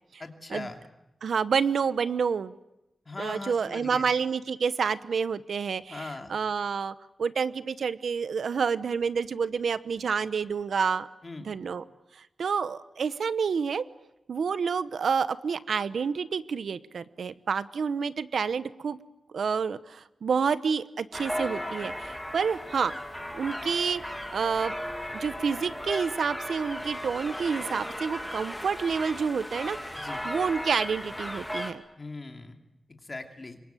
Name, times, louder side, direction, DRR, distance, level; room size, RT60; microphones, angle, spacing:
voice 1, 0.2-0.8 3.0-4.1 5.9-6.4 11.2-11.5 29.9-30.2 32.0-32.6 32.9-33.6, left 3 dB, 30° left, 5 dB, 2.9 m, -40 dB
voice 2, 1.2-2.6 3.2-11.1 11.5-11.8 12.2-13.8 14.3-19.0 19.3-22.9 23.3-24.7 25.1-31.8, right 6 dB, 80° right, 15 dB, 0.9 m, -29 dB
sound 1, 21.1-31.7, equal, 5° left, 2.3 m, -36 dB
27.0 x 23.0 x 9.2 m, 0.89 s
wide cardioid pair, 145°, 0 cm